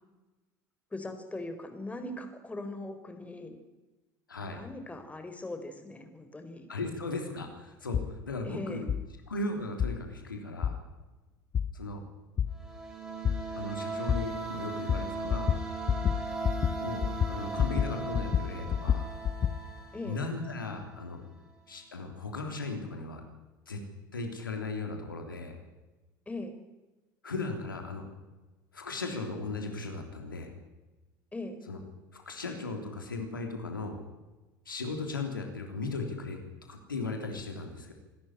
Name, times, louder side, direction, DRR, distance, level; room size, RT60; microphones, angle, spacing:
voice 1, 0.9-3.6 4.4-6.7 8.4-8.8 19.9-20.2 26.3-26.5 31.3-31.6, left 2 dB, 10° left, 7 dB, 4.1 m, -40 dB
voice 2, 4.3-4.6 6.7-8.9 9.3-10.8 11.7-12.0 13.5-15.5 16.8-19.1 20.0-21.2 21.7-23.2 23.7-23.8 24.1-25.6 27.2-28.1 28.7-30.5 31.7-31.8 32.1-34.0 34.7-36.4 36.7-37.9, left 3 dB, 85° left, 4 dB, 3.5 m, -37 dB
sound 1, 7.9-8.1 8.9-9.0 9.8-9.9 10.6-10.7 11.5-11.7 12.4-12.5 13.2-13.4 14.1-14.2 14.9-15.0 15.3-15.6 15.9-16.2 16.4-16.7 17.0-17.9 18.1-19.5, left 8 dB, 35° left, 1.4 m, -27 dB
sound 2, 12.5-21.1, right 4 dB, 5° right, 5.6 m, -38 dB
26.5 x 13.0 x 10.0 m, 1.1 s
figure-of-eight pair, 70°, 11 cm